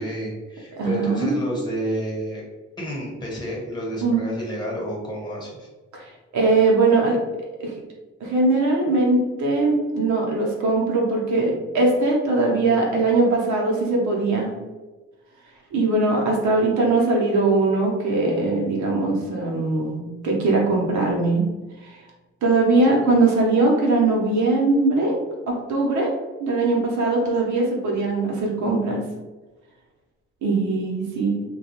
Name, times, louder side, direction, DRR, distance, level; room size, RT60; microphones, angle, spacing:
voice 1, 0.0-2.4 2.8-5.7, equal, 15° left, -3 dB, 1.1 m, -30 dB
voice 2, 0.8-1.4 4.0-4.2 5.9-7.2 7.6-7.7 8.2-14.5 15.7-21.4 21.9-22.0 22.4-25.2 25.5-26.1 26.4-29.0 30.4-31.4, right 3 dB, 70° right, -1 dB, 0.8 m, -21 dB
2.3 x 2.3 x 2.9 m, 1.2 s
cardioid pair, 90°, 30 cm